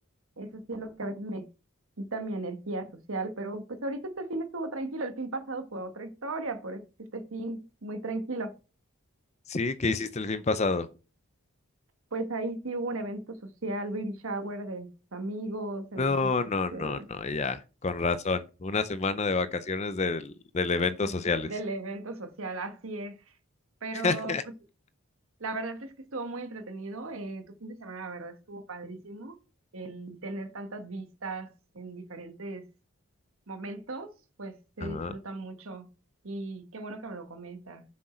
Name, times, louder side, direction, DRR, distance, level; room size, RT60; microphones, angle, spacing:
voice 1, 0.4-1.5 2.0-6.8 7.1-8.5 12.1-16.3 16.7-17.1 21.0-21.1 21.4-23.2 23.8-24.4 25.4-29.3 29.7-31.5 31.7-32.6 33.5-34.1 34.4-35.9 36.2-37.8, right 2 dB, 70° right, 1.3 m, -36 dB
voice 2, 9.5-10.9 16.0-21.5 23.9-24.4 34.8-35.2, left 4 dB, 30° left, 0.5 m, -29 dB
7.7 x 6.4 x 4.3 m
head